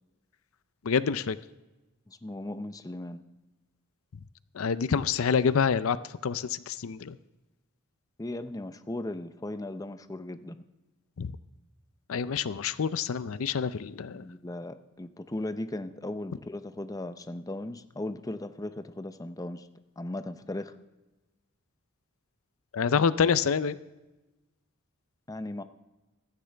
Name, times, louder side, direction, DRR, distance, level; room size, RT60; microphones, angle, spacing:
voice 1, 0.8-1.4 4.5-6.0 6.2-7.2 11.2-11.3 12.1-14.3 22.7-23.8, left 6 dB, 70° left, 15 dB, 0.5 m, -27 dB
voice 2, 2.1-3.2 8.2-10.6 14.1-19.7 20.0-20.8 25.3-25.6, left 1 dB, 15° left, 10 dB, 0.5 m, -37 dB
16.0 x 13.5 x 3.4 m, 1.1 s
head